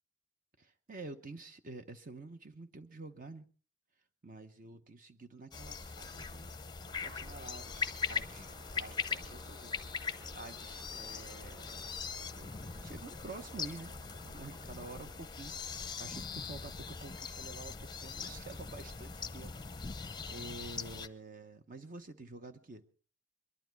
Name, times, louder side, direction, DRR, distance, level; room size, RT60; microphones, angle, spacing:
voice 1, 0.6-3.5 4.2-6.6 7.0-8.5 8.8-11.9 12.3-12.5 12.8-13.9 14.2-19.9 20.3-22.9, right 3 dB, 40° right, 9 dB, 0.8 m, -49 dB
sound 1, 5.5-21.1, left 6 dB, 20° left, 0.7 m, -41 dB
sound 2, 6.9-15.1, right 1 dB, 25° right, 1.2 m, -56 dB
22.5 x 12.0 x 4.6 m, 0.40 s
head